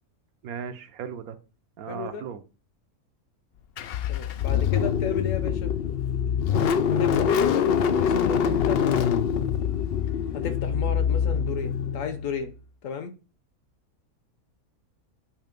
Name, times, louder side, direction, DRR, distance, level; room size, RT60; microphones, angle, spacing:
voice 1, 0.4-1.4 1.8-2.4, right 7 dB, 70° right, 1.2 m, -36 dB
voice 2, 1.9-2.2 4.1-5.7 6.9-8.8 10.3-12.5 12.8-13.1, left 6 dB, 65° left, 1.1 m, -33 dB
Car / Engine starting, 3.8-12.5, left 7 dB, 90° left, 0.5 m, -24 dB
8.7 x 3.2 x 5.1 m
omnidirectional pair, 1.6 m